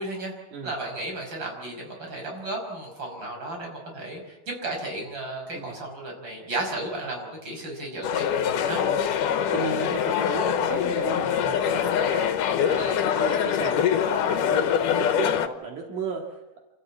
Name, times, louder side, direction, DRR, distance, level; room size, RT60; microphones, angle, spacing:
voice 1, 0.0-0.3 0.6-8.3 8.7-8.8 12.7-13.0, right 2 dB, 35° right, 1 dB, 6.5 m, -34 dB
sound 1, 8.0-15.5, left 8 dB, 90° left, 2.6 m, -24 dB
voice 2, 9.5-16.4, right 5 dB, 75° right, 0 dB, 3.6 m, -34 dB
28.0 x 14.0 x 8.6 m, 1.1 s
omnidirectional pair, 3.6 m